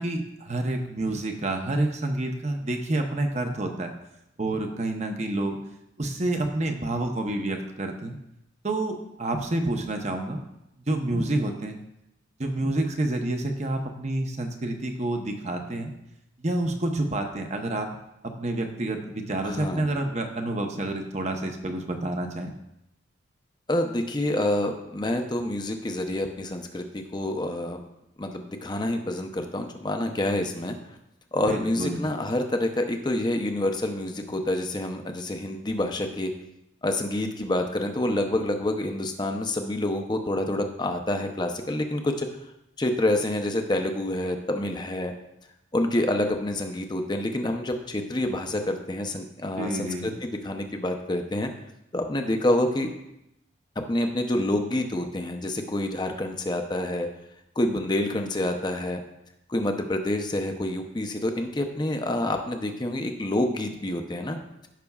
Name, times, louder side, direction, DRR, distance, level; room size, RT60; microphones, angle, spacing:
voice 1, 0.0-3.9 4.4-5.6 6.0-8.2 8.6-10.4 10.9-11.8 12.4-15.9 16.4-17.9 18.2-22.5 31.5-32.0 49.6-50.1, right 2 dB, 35° right, 4 dB, 0.8 m, -28 dB
voice 2, 19.4-19.9 23.7-27.8 28.2-30.8 31.3-36.3 36.8-42.3 42.8-45.1 45.7-51.5 51.9-52.9 53.9-57.1 57.6-59.0 59.5-64.4, left 1 dB, 20° left, 5 dB, 0.6 m, -27 dB
15.0 x 5.9 x 2.3 m, 0.85 s
head